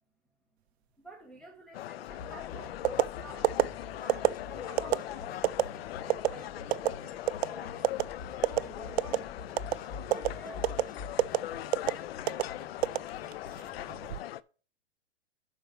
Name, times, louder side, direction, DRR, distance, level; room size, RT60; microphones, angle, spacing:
voice 1, 1.0-7.9 8.5-9.4 10.1-10.6 11.4-11.6 12.1-12.2, right 1 dB, ahead, 1.4 m, -50 dB
sound 1, 1.7-14.4, left 13 dB, 60° left, 0.5 m, -40 dB
sound 2, 2.1-14.0, left 4 dB, 25° left, 1.6 m, -47 dB
sound 3, 2.8-3.1 3.4-3.6 4.1-4.3 4.8-5.0 5.4-5.6 6.1-6.3 6.7-6.9 7.3-7.5 7.8-8.0 8.4-8.6 9.0-9.2 9.6-9.8 10.1-10.3 10.6-10.8 11.2-11.4 11.7-11.9 12.3-12.4 12.8-13.5 13.9-14.2, right 13 dB, 70° right, 0.5 m, -24 dB
7.1 x 6.0 x 5.4 m
hypercardioid pair, 125°, 34 cm